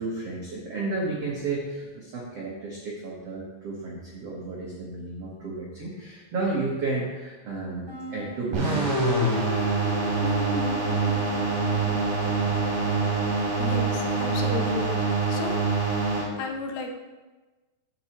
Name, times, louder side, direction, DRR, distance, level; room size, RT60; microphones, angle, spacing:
voice 1, 0.0-8.9, right 3 dB, 85° right, -4 dB, 1.3 m, -32 dB
sound 1, 7.9-12.5, left 4 dB, 10° left, 1.8 m, -34 dB
sound 2, 8.5-16.2, right 4 dB, 50° right, 4.2 m, -25 dB
sound 3, 9.9-15.1, left 2 dB, 60° left, 1.9 m, -41 dB
voice 2, 13.6-14.9 15.3-15.6 16.2-16.9, left 5 dB, 80° left, 2 dB, 3.1 m, -33 dB
11.0 x 8.4 x 3.0 m, 1.2 s
omnidirectional pair, 4.9 m